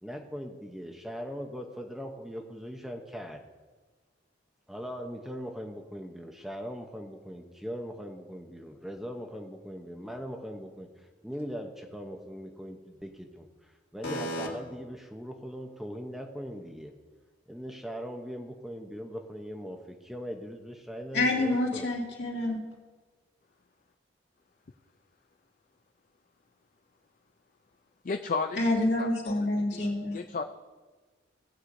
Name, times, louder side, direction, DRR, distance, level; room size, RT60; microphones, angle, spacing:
voice 1, 0.0-3.5 4.7-16.9 17.5-21.9, equal, ahead, 3 dB, 0.7 m, -40 dB
voice 2, 14.0-14.5 21.1-22.6 28.6-30.2, left 2 dB, 65° left, -2 dB, 2.4 m, -28 dB
voice 3, 28.0-29.3 29.7-29.8 30.1-30.4, left 4 dB, 45° left, 6 dB, 0.4 m, -33 dB
18.5 x 8.0 x 2.6 m, 1.3 s
head